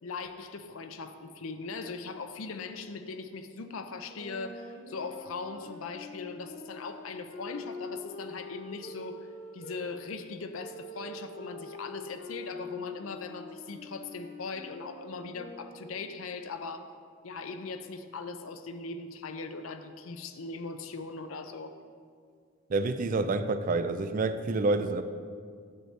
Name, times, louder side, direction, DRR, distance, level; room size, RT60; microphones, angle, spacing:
voice 1, 0.0-16.9 17.2-21.7, left 4 dB, 80° left, 8 dB, 0.6 m, -40 dB
sound 1, 4.0-9.9 10.6-16.0, left 2 dB, 40° left, 0.9 m, -45 dB
voice 2, 22.7-25.0, right 3 dB, 40° right, 11 dB, 0.4 m, -28 dB
9.3 x 7.8 x 3.3 m, 2.1 s
head